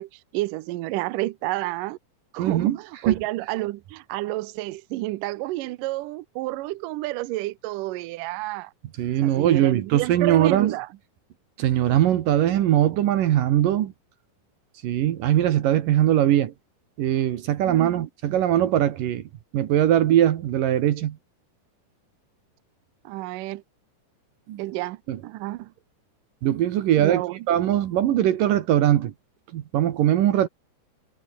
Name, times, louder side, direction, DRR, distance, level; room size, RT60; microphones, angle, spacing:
voice 1, 0.0-2.0 2.3-8.7 9.2-10.9 17.6-18.0 23.0-23.6 24.6-25.7 27.0-27.5, right 18 dB, 80° right, 1.9 m, -30 dB
voice 2, 2.4-2.8 3.1-3.2 9.0-10.7 11.6-13.9 14.8-16.5 17.0-19.2 19.5-21.2 24.5-24.6 25.1-25.2 26.4-27.2 27.5-29.1 29.5-30.5, right 11 dB, 65° right, 2.6 m, -21 dB
omnidirectional pair, 4.8 m